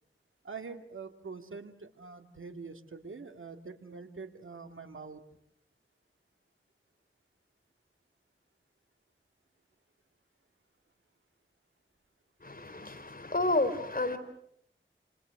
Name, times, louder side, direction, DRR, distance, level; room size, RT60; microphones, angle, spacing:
voice 1, 0.4-5.2, right 4 dB, 90° right, 7 dB, 2.3 m, -45 dB
voice 2, 12.4-14.2, left 2 dB, 45° left, 7 dB, 3.9 m, -30 dB
29.5 x 27.5 x 6.6 m, 0.72 s
wide cardioid pair, 70°, 20 cm